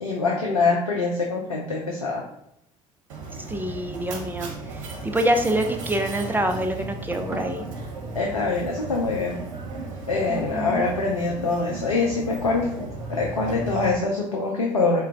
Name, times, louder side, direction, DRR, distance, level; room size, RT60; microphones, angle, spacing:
voice 1, 0.0-2.2 8.1-9.4 10.1-15.0, left 3 dB, 90° left, -1 dB, 0.4 m, -24 dB
Mechanisms, 3.1-13.9, right 3 dB, 70° right, 0.7 m, -35 dB
voice 2, 3.5-7.6 10.3-10.7, right 1 dB, 10° right, 4 dB, 0.4 m, -26 dB
4.2 x 2.2 x 3.5 m, 0.79 s
figure-of-eight pair, 55°, 17 cm